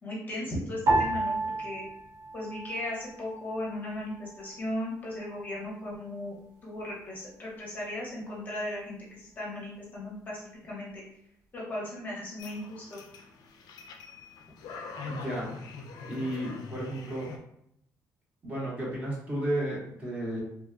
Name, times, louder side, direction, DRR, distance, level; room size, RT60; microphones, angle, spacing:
voice 1, 0.0-1.9 2.3-6.4 6.6-11.0 11.5-13.0, left 1 dB, 25° left, -5 dB, 0.7 m, -37 dB
sound 1, 0.9-3.4 3.6-4.5 5.2-5.6, right 2 dB, 60° right, 0.8 m, -31 dB
sound 2, 12.4-17.4, left 4 dB, 75° left, 0.4 m, -43 dB
voice 2, 15.1-15.5 16.1-17.3 18.4-20.4, right 1 dB, 20° right, -5 dB, 0.7 m, -33 dB
2.9 x 2.0 x 2.4 m, 0.75 s
cardioid pair, 170°, 7 cm